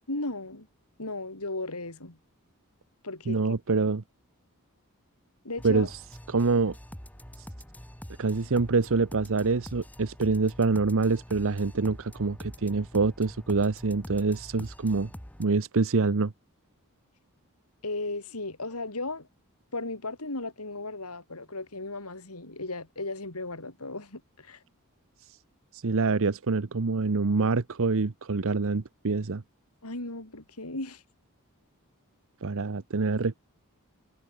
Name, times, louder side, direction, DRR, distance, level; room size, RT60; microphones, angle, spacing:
voice 1, 0.1-0.7 1.0-2.2 3.0-3.4 5.4-5.9 17.8-19.3 19.7-24.6 29.8-31.0, left 2 dB, 80° left, 4.8 m, -36 dB
voice 2, 3.3-4.0 5.6-6.0 6.3-6.7 7.4-7.5 8.2-15.1 15.4-16.3 25.2-25.4 25.7-29.4 32.4-33.3, right 4 dB, 65° right, 0.8 m, -26 dB
sound 1, 5.6-15.5, equal, 5° left, 2.8 m, -45 dB
head